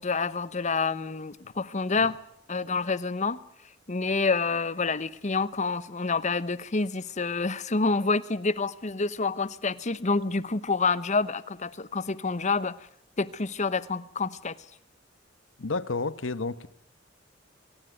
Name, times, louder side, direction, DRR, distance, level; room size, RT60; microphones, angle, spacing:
voice 1, 0.0-2.2 2.5-3.4 3.9-12.8 13.2-14.5, left 4 dB, 40° left, 0.9 m, -28 dB
voice 2, 15.6-16.7, left 3 dB, 80° left, 1.1 m, -31 dB
23.0 x 18.5 x 9.4 m
head